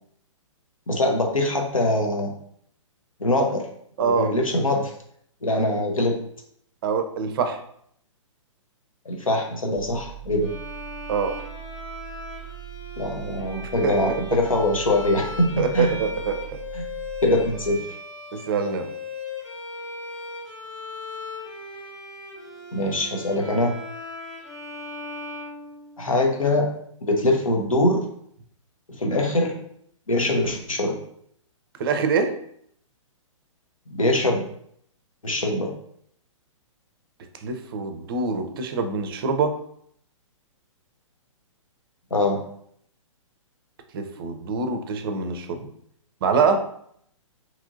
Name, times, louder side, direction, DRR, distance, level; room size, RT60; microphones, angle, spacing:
voice 1, 0.9-2.3 3.2-3.6 4.0-4.9 5.4-6.2 9.0-10.5 13.0-15.9 16.7-16.8 17.2-17.9 22.7-23.7 26.0-26.7 27.0-28.0 28.9-29.6 30.1-31.0 33.9-34.4 35.2-35.7 42.1-42.4, left 1 dB, 85° left, 2 dB, 0.7 m, -23 dB
voice 2, 4.0-4.3 6.8-7.6 11.1-11.4 13.8-14.4 15.6-16.4 18.3-18.9 31.8-32.3 37.4-39.5 43.9-45.7 46.2-46.7, right 5 dB, 45° right, 7 dB, 0.5 m, -24 dB
sound 1, 9.8-17.8, right 15 dB, 45° left, 0.4 m, -41 dB
Bowed string instrument, 10.4-26.3, left 3 dB, 65° left, 1.5 m, -37 dB
2.9 x 2.6 x 2.5 m, 0.67 s
figure-of-eight pair, 120°, 17 cm